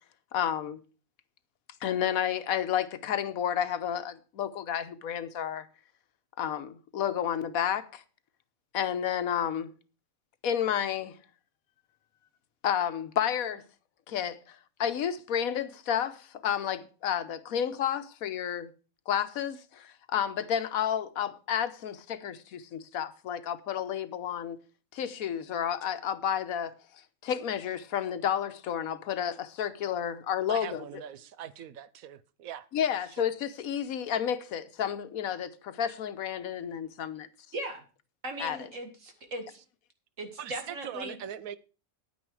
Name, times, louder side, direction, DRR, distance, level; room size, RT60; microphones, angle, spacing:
voice 1, 0.3-0.8 1.8-5.6 6.4-8.0 8.7-9.7 10.4-11.2 12.6-13.6 14.1-18.7 19.1-24.6 24.9-26.7 27.2-30.8 32.7-37.3 38.4-38.7, left 9 dB, 85° left, 1.3 m, -31 dB
voice 2, 30.5-32.7 33.2-33.3 40.4-41.6, right 9 dB, 80° right, 1.2 m, -41 dB
voice 3, 37.5-37.8 38.2-39.6 40.2-41.2, right 1 dB, 65° right, 2.3 m, -38 dB
9.7 x 9.4 x 4.7 m
omnidirectional pair, 1.5 m